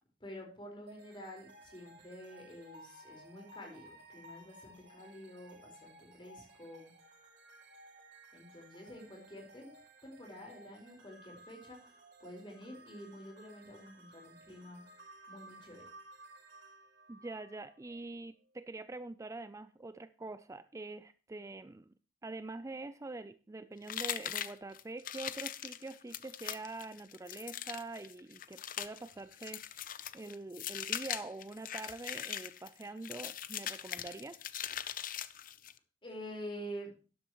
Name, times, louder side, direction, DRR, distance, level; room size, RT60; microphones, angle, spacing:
voice 1, 0.2-6.9 8.3-9.8 10.0-15.0 15.3-15.8 36.0-36.9, equal, 30° left, 1 dB, 4.5 m, -48 dB
sound 1, 0.9-18.0, right 1 dB, 75° right, 4.6 m, -57 dB
voice 2, 17.1-21.9 22.2-29.8 30.1-34.5, right 2 dB, 15° right, 13 dB, 0.4 m, -45 dB
sound 2, 23.9-35.8, left 10 dB, 50° left, 0.7 m, -41 dB
12.5 x 11.5 x 3.0 m, 0.37 s
head